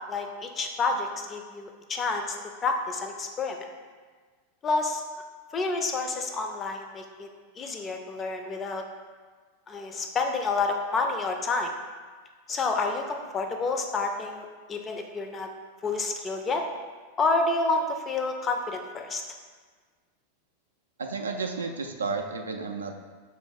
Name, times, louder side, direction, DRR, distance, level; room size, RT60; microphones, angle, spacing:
voice 1, 0.1-2.4 2.6-3.7 4.6-5.0 5.5-7.3 7.6-8.8 9.7-11.7 12.5-15.5 15.8-16.6 17.2-19.2, left 3 dB, 20° left, 4 dB, 0.4 m, -29 dB
voice 2, 21.0-22.9, right 4 dB, 70° right, 4 dB, 0.3 m, -32 dB
3.2 x 2.9 x 4.5 m, 1.5 s
figure-of-eight pair, 90°, 0 cm